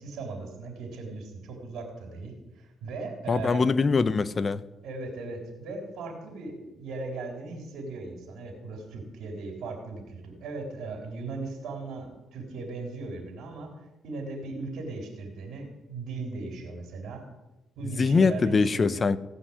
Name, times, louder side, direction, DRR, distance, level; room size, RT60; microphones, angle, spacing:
voice 1, 0.0-3.6 4.8-13.7 14.0-17.2 17.8-19.0, right 3 dB, 80° right, 3.9 m, -38 dB
voice 2, 3.3-4.6 18.0-19.2, left 4 dB, 35° left, 0.7 m, -23 dB
17.0 x 5.7 x 9.7 m
cardioid pair, 90°, 0 cm